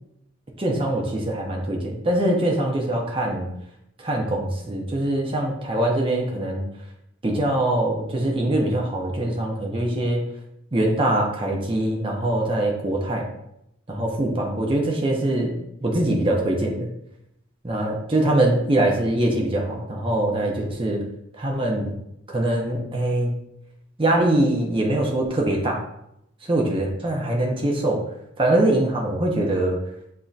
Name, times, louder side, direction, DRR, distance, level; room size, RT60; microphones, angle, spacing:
voice 1, 0.6-3.5 4.0-6.7 7.2-10.2 10.7-13.3 13.9-15.6 15.8-16.9 17.6-21.0 21.3-21.9 22.3-23.3 24.0-25.8 26.4-28.0 28.4-29.8, right 1 dB, 25° right, -1 dB, 0.6 m, -23 dB
7.6 x 2.7 x 2.4 m, 0.80 s
head